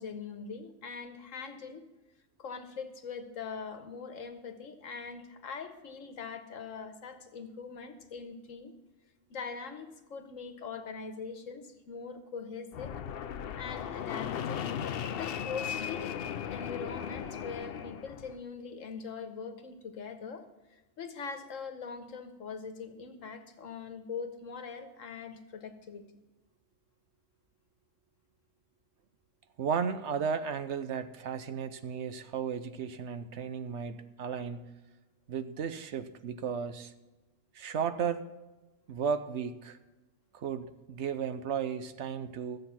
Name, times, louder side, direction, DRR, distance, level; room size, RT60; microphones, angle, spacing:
voice 1, 0.0-1.9 2.4-8.7 9.3-12.9 13.5-14.7 15.2-16.2 16.5-20.5 20.7-26.0, left 5 dB, 75° left, 8 dB, 1.5 m, -42 dB
Fixed-wing aircraft airplane, 12.7-18.4, left 8 dB, 60° left, 0.7 m, -37 dB
voice 2, 29.6-34.7 35.3-36.9 37.5-38.2 38.9-39.8 40.3-42.6, right 7 dB, 65° right, 11 dB, 1.0 m, -34 dB
13.0 x 8.0 x 5.8 m, 1.1 s
omnidirectional pair, 1.3 m